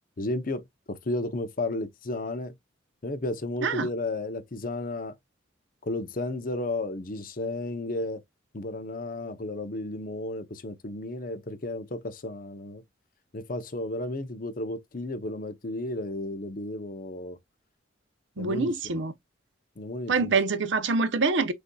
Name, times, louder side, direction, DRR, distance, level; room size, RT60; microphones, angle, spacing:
voice 1, 0.2-2.5 3.0-5.1 5.8-8.2 8.5-12.8 13.3-17.4 18.4-19.0 19.8-20.3, left 2 dB, 45° left, 0.7 m, -33 dB
voice 2, 18.4-19.1 20.1-21.5, right 4 dB, 65° right, 0.6 m, -25 dB
6.4 x 2.7 x 2.2 m
head